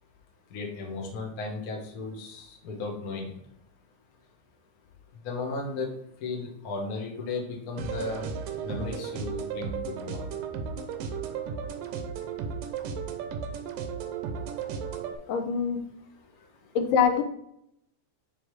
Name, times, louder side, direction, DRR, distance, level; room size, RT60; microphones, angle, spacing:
voice 1, 0.5-3.3 5.2-5.9 6.2-8.3 8.6-10.3 15.4-15.5, left 3 dB, 65° left, 0 dB, 0.9 m, -35 dB
sound 1, 7.8-15.2, right 6 dB, 80° right, 2.2 m, -34 dB
voice 2, 15.3-15.8 16.8-17.2, left 7 dB, 90° left, 6 dB, 2.4 m, -24 dB
9.6 x 3.6 x 3.2 m, 0.76 s
omnidirectional pair, 3.7 m